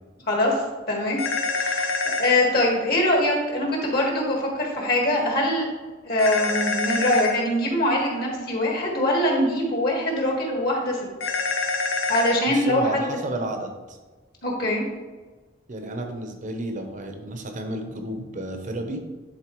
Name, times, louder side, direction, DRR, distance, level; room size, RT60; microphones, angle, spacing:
voice 1, 0.3-0.6 0.9-1.2 1.6-5.7 6.0-11.0 12.1-13.1 14.4-14.8, left 1 dB, 50° left, -1 dB, 1.6 m, -23 dB
sound 1, 1.2-2.3 6.2-7.3 11.2-12.4, left 3 dB, 85° left, 0.7 m, -26 dB
voice 2, 12.5-14.0 15.7-19.0, right 1 dB, 40° right, 5 dB, 0.8 m, -32 dB
10.5 x 3.9 x 3.1 m, 1.3 s
head